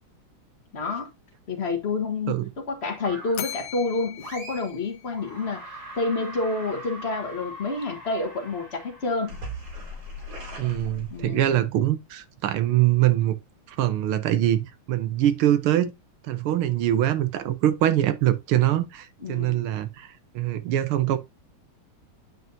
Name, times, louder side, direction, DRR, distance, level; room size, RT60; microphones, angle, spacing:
voice 1, 0.7-1.1 1.5-5.6 6.0-9.3 11.1-11.6 19.2-19.6, left 3 dB, 35° left, 1.4 m, -29 dB
sound 1, 3.0-3.6 4.2-4.8 5.1-11.6, equal, 60° right, 3.2 m, -40 dB
Bell, 3.3-5.6, left 12 dB, 80° left, 1.4 m, -39 dB
voice 2, 10.6-13.4 13.7-15.9 16.2-20.1 20.3-21.2, right 12 dB, 85° right, 1.7 m, -23 dB
9.3 x 5.4 x 2.7 m
omnidirectional pair, 2.3 m